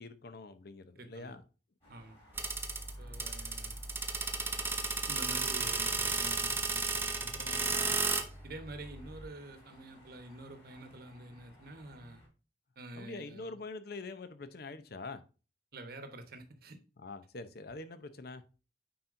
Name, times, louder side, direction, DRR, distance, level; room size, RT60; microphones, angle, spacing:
voice 1, 0.0-1.4 13.0-15.2 17.0-18.4, left 3 dB, 60° left, 0.7 m, -44 dB
voice 2, 1.0-1.4 1.9-2.2 3.0-3.8 5.1-8.0 8.4-12.2 12.8-13.5 15.7-16.8, right 2 dB, 55° right, 1.1 m, -48 dB
sound 1, 1.8-12.3, equal, 35° left, 3.8 m, -59 dB
sound 2, 2.4-9.2, right 3 dB, 15° right, 0.6 m, -34 dB
9.3 x 4.3 x 2.6 m
head